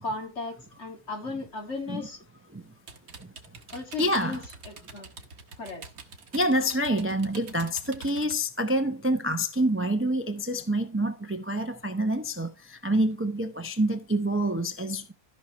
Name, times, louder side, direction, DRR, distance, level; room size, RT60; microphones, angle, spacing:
voice 1, 0.0-2.2 3.7-5.1 5.6-5.8, left 3 dB, 50° left, 2.5 m, -36 dB
sound 1, 2.9-8.4, right 4 dB, 85° right, 1.8 m, -46 dB
voice 2, 4.0-4.4 6.3-15.1, right 1 dB, 10° right, 0.7 m, -27 dB
14.5 x 5.9 x 3.0 m
omnidirectional pair, 1.5 m